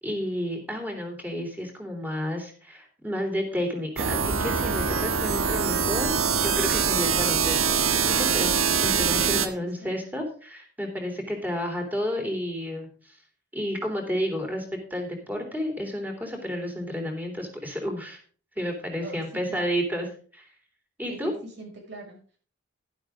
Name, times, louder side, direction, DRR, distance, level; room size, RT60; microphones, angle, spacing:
voice 1, 0.0-13.2 13.5-14.6 14.9-18.2 18.5-20.1 20.3-20.5 21.0-21.3, equal, 10° right, 3 dB, 3.4 m, -31 dB
sound 1, 4.0-9.5, right 6 dB, 85° right, 1.5 m, -24 dB
voice 2, 9.2-9.9 19.0-19.8 21.1-22.4, right 2 dB, 55° right, -1 dB, 6.2 m, -43 dB
12.0 x 11.5 x 3.8 m, 0.40 s
head